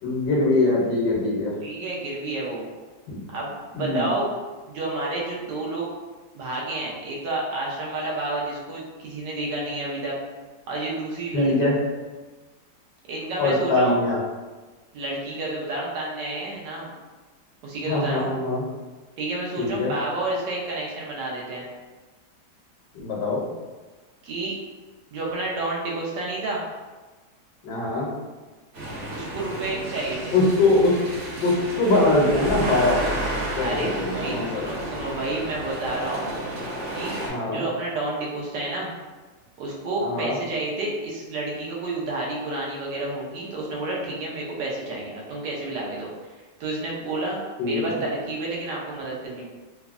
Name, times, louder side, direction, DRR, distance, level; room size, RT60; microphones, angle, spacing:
voice 1, 0.0-1.5 3.1-3.2 3.7-4.1 11.3-11.8 13.4-14.2 17.9-18.7 19.6-19.9 23.0-23.4 27.6-28.1 30.3-31.0 31.4-33.0 33.6-34.6 37.3-37.6 40.0-40.4 47.6-48.0, left 2 dB, 80° left, -3 dB, 1.2 m, -22 dB
voice 2, 1.6-2.7 3.3-4.3 4.7-5.9 6.3-10.2 10.7-11.7 13.1-14.0 14.9-16.9 17.6-18.4 19.2-21.7 24.2-24.5 25.1-26.6 29.1-30.3 33.6-36.3 36.9-37.2 37.5-38.9 39.6-46.1 46.6-49.5, right 2 dB, 90° right, -3 dB, 1.3 m, -30 dB
sound 1, 28.7-37.3, right 1 dB, 55° right, 1.0 m, -31 dB
3.4 x 2.0 x 2.3 m, 1.3 s
omnidirectional pair, 1.8 m